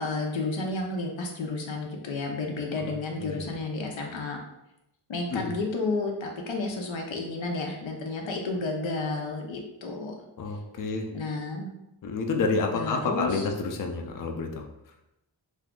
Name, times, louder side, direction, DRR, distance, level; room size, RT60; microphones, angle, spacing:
voice 1, 0.0-4.4 5.1-10.2 11.1-11.7 12.7-13.5, left 3 dB, 90° left, 1 dB, 0.6 m, -31 dB
voice 2, 3.2-3.5 5.3-5.5 10.4-11.1 12.0-14.7, left 4 dB, 45° left, 3 dB, 0.5 m, -29 dB
2.6 x 2.4 x 3.6 m, 0.88 s
wide cardioid pair, 50°, 45 cm